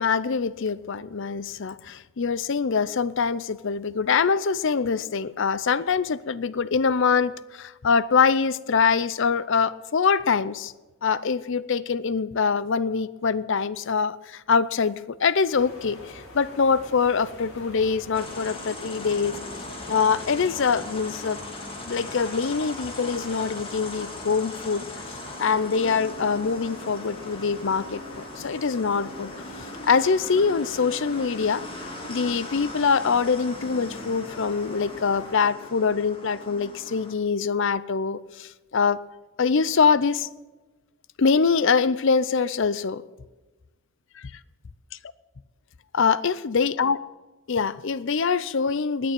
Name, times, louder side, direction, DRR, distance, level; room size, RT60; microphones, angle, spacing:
voice 1, 0.0-10.7 11.0-19.4 19.9-21.4 21.8-29.3 29.8-31.6 32.1-39.0 39.4-40.3 41.2-43.0 44.2-44.3 45.9-47.0 47.5-49.1, left 5 dB, 55° left, 18 dB, 0.5 m, -24 dB
sound 1, 15.5-35.3, left 1 dB, 75° left, 3.7 m, -44 dB
sound 2, 18.1-37.1, left 1 dB, 25° left, 2.0 m, -39 dB
20.0 x 7.0 x 8.9 m, 1.2 s
head